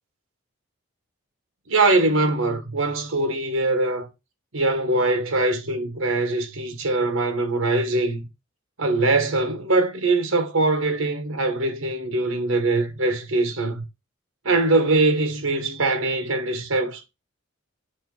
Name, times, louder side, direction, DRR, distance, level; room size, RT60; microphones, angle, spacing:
voice 1, 1.7-4.1 4.5-8.2 8.8-13.8 14.4-17.0, right 2 dB, 75° right, 1.3 m, -22 dB
7.8 x 2.9 x 5.3 m
head